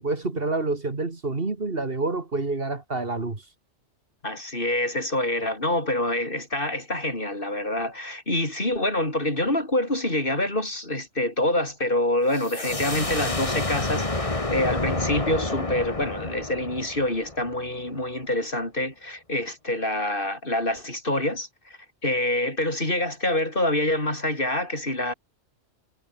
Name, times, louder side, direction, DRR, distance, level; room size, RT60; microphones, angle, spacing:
voice 1, 0.0-3.4, right 3 dB, 50° right, 2.5 m, -28 dB
voice 2, 4.2-21.8 22.0-25.1, left 1 dB, 45° left, 6.0 m, -26 dB
sound 1, 12.3-17.9, left 2 dB, 30° left, 2.3 m, -29 dB
omnidirectional pair, 1.2 m